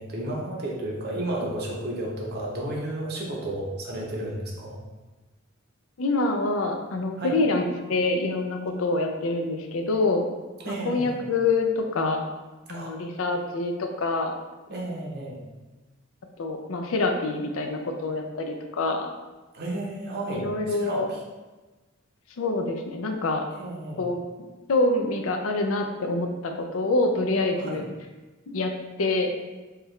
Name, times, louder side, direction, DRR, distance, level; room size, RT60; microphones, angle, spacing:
voice 1, 0.0-4.8 7.2-7.4 10.6-11.2 12.7-12.9 14.7-15.4 19.5-21.2 23.5-24.1 27.5-27.9, right 1 dB, 55° right, -2 dB, 0.8 m, -32 dB
voice 2, 6.0-7.6 7.9-10.3 10.7-12.2 12.7-14.3 16.4-19.1 20.3-21.1 22.4-23.4 24.0-24.2 24.7-27.8 28.5-28.7 29.0-29.3, left 2 dB, 85° left, 4 dB, 0.5 m, -26 dB
4.5 x 2.4 x 3.1 m, 1.2 s
head